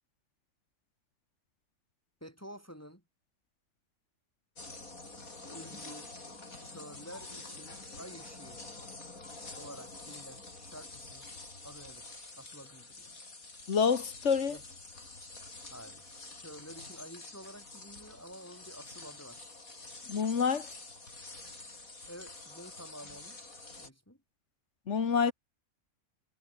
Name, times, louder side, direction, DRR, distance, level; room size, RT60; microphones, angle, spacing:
voice 1, 2.2-3.0 5.5-6.1 6.7-8.6 9.6-11.3 11.6-13.2 14.5-14.6 15.7-19.5 22.1-23.4 23.8-24.2, equal, 10° left, 7.5 m, -50 dB
sound 1, 4.6-23.9, left 3 dB, 70° left, 5.1 m, -48 dB
voice 2, 13.7-14.6 20.1-20.7 24.9-25.3, left 6 dB, 55° left, 1.7 m, -27 dB
omnidirectional pair, 1.5 m